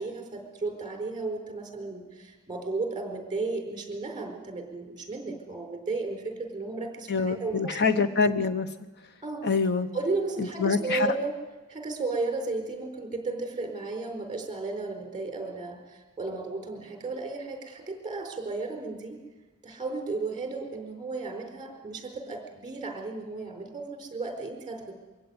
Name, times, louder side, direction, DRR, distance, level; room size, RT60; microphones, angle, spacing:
voice 1, 0.0-7.8 9.2-9.4 9.9-11.3 11.7-19.2 19.6-24.9, right 3 dB, 20° right, 3 dB, 4.3 m, -34 dB
voice 2, 7.1-8.7 9.4-9.9 10.4-11.1, left 4 dB, 50° left, 10 dB, 0.9 m, -25 dB
23.5 x 16.0 x 9.6 m, 1.2 s
head